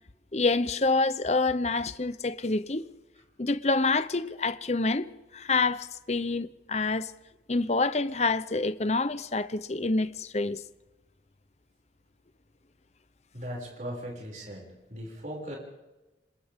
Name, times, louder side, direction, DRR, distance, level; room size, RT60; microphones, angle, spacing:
voice 1, 0.3-2.9 3.4-7.1 7.5-10.6, left 3 dB, 35° left, 0.8 m, -27 dB
voice 2, 13.3-14.6 14.9-15.5, equal, 45° right, 6.6 m, -38 dB
30.0 x 27.0 x 3.7 m
head